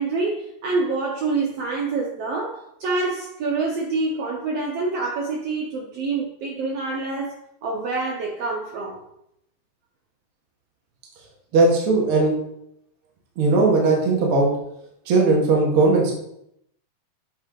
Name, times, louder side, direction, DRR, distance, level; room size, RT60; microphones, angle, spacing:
voice 1, 0.0-9.0, right 3 dB, 85° right, -1 dB, 1.4 m, -26 dB
voice 2, 11.5-12.3 13.4-14.5 15.1-16.2, right 3 dB, 55° right, -2 dB, 1.6 m, -18 dB
8.1 x 3.6 x 3.8 m, 0.75 s
omnidirectional pair, 3.8 m